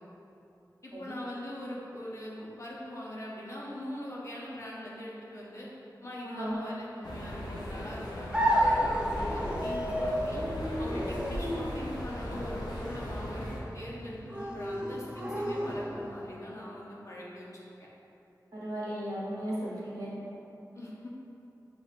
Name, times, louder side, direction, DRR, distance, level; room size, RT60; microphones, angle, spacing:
voice 1, 0.8-5.7 6.0-10.4 10.8-17.5 20.7-21.1, left 1 dB, 45° left, -5 dB, 0.8 m, -42 dB
sound 1, 7.0-13.6, left 1 dB, 85° left, 0.5 m, -37 dB
sound 2, 8.3-16.3, equal, 15° right, 0.5 m, -32 dB
voice 2, 18.5-20.1, right 1 dB, 60° right, -9 dB, 1.3 m, -35 dB
5.8 x 2.4 x 2.4 m, 2.9 s
wide cardioid pair, 50°, 7 cm